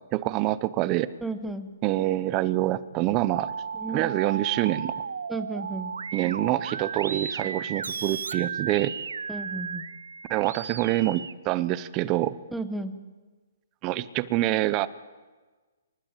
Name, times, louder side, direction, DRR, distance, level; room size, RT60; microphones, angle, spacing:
voice 1, 0.1-1.1 1.8-3.5 3.9-4.9 6.1-9.0 10.3-12.4 13.8-14.9, right 16 dB, 20° right, 17 dB, 0.7 m, -26 dB
voice 2, 1.2-1.8 3.8-4.1 5.3-5.9 9.3-9.8 12.5-13.0, right 2 dB, ahead, 8 dB, 1.1 m, -33 dB
sound 1, 2.9-11.3, right 6 dB, 90° right, 1.0 m, -35 dB
25.5 x 20.0 x 8.9 m, 1.3 s
hypercardioid pair, 170°, 0 cm